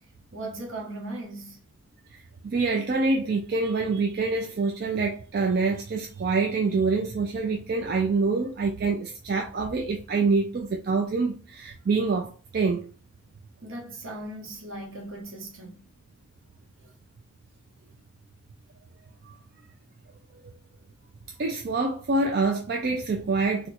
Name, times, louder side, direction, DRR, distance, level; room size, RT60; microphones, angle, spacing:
voice 1, 0.3-1.6 13.6-15.8 16.8-16.9, right 2 dB, 70° right, 1.1 m, -38 dB
voice 2, 2.5-12.9 19.2-19.4 21.4-23.7, right 3 dB, 45° right, 0.3 m, -26 dB
4.2 x 2.2 x 2.4 m
head